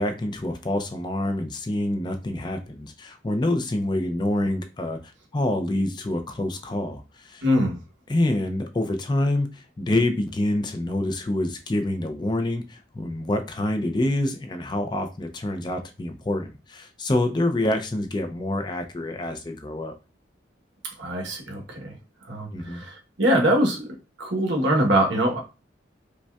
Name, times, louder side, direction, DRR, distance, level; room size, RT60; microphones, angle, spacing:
voice 1, 0.0-7.4 8.1-20.0 22.5-22.9, left 1 dB, 25° left, 6 dB, 0.4 m, -27 dB
voice 2, 7.4-7.8 21.0-21.9 22.3-23.8 24.2-25.4, equal, 75° right, 1 dB, 1.0 m, -23 dB
5.1 x 2.2 x 2.3 m, 0.30 s
head